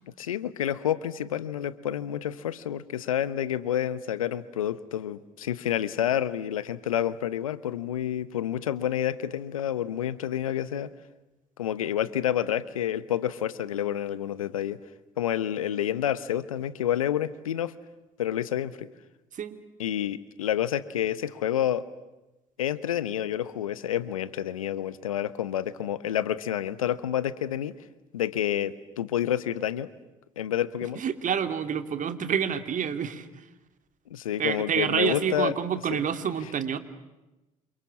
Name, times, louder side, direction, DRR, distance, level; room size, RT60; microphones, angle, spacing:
voice 1, 0.2-10.9 11.6-14.8 15.2-17.7 18.2-18.9 19.8-21.9 22.6-27.8 28.1-29.9 30.4-31.0 34.1-35.5 35.9-36.0, left 10 dB, 90° left, 17 dB, 1.0 m, -29 dB
voice 2, 31.0-33.5 34.4-36.8, right 8 dB, 50° right, 9 dB, 2.8 m, -28 dB
28.5 x 27.0 x 7.2 m, 1.0 s
hypercardioid pair, 55°, 17 cm